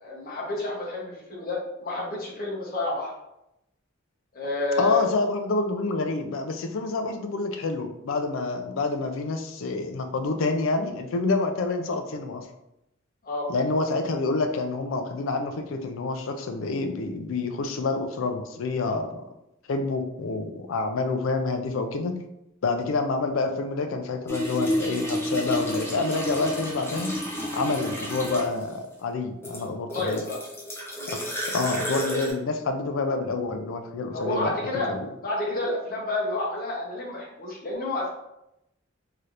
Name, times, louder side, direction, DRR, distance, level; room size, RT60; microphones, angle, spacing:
voice 1, 0.0-3.1 4.3-5.0 13.2-13.5 29.9-30.4 31.0-31.3 34.1-34.9 35.2-38.1, left 2 dB, 45° left, -3 dB, 0.9 m, -29 dB
voice 2, 4.8-12.4 13.5-19.2 19.7-22.1 22.6-27.1 27.5-30.2 31.1-31.2 31.5-34.5 34.9-35.1, left 3 dB, 70° left, 6 dB, 0.4 m, -27 dB
sound 1, 24.3-28.7 29.4-32.3, equal, 10° left, 0.7 m, -31 dB
3.3 x 2.8 x 2.5 m, 0.84 s
head